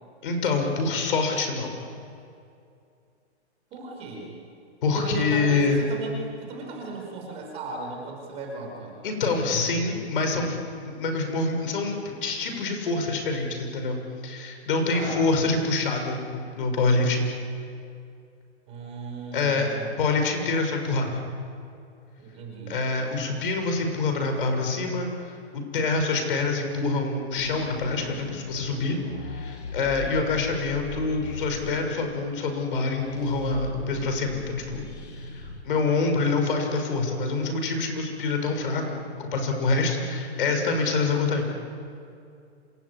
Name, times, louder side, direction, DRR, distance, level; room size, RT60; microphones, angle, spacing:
voice 1, 0.2-1.7 4.8-5.8 9.0-10.6 11.0-14.0 14.2-17.3 19.3-21.1 22.7-29.0 29.3-34.8 35.3-41.5, left 3 dB, 50° left, 4 dB, 6.2 m, -26 dB
voice 2, 3.7-4.3 4.9-6.1 6.4-9.0 14.9-15.2 18.7-20.2 22.2-22.8 28.7-29.1, right 3 dB, 20° right, 0 dB, 4.9 m, -37 dB
sound 1, 27.4-35.6, left 2 dB, 75° left, 5.4 m, -40 dB
27.5 x 21.0 x 9.8 m, 2.5 s
hypercardioid pair, 170°, 34 cm